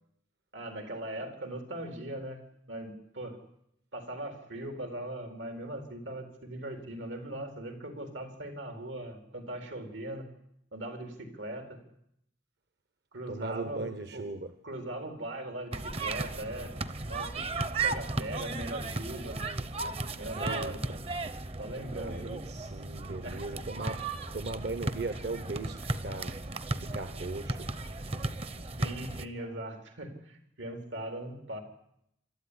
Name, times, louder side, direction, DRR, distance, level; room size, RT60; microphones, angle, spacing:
voice 1, 0.5-2.4 2.7-3.4 3.9-10.3 10.7-11.8 13.1-14.2 14.6-16.7 17.1-17.5 17.8-19.4 20.2-21.0 21.6-22.3 23.2-23.6 28.8-31.6, right 1 dB, 85° right, 5 dB, 4.1 m, -40 dB
voice 2, 13.3-14.5 20.3-21.0 22.0-26.4 26.8-27.7, right 3 dB, 60° right, 9 dB, 1.1 m, -38 dB
sound 1, 15.7-29.3, right 3 dB, 30° right, 0.8 m, -35 dB
26.5 x 13.0 x 10.0 m, 0.77 s
head